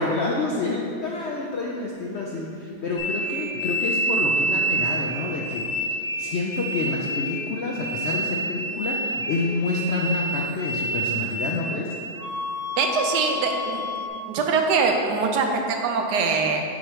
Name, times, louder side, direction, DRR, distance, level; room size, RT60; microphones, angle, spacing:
voice 1, 0.0-11.9, left 3 dB, 75° left, -2 dB, 0.6 m, -28 dB
sound 1, 3.0-11.8 12.2-14.1, right 1 dB, 55° left, 1.2 m, -28 dB
voice 2, 12.8-13.8 14.3-16.6, right 4 dB, 85° right, 3 dB, 1.3 m, -23 dB
7.8 x 3.0 x 4.8 m, 2.4 s
omnidirectional pair, 1.7 m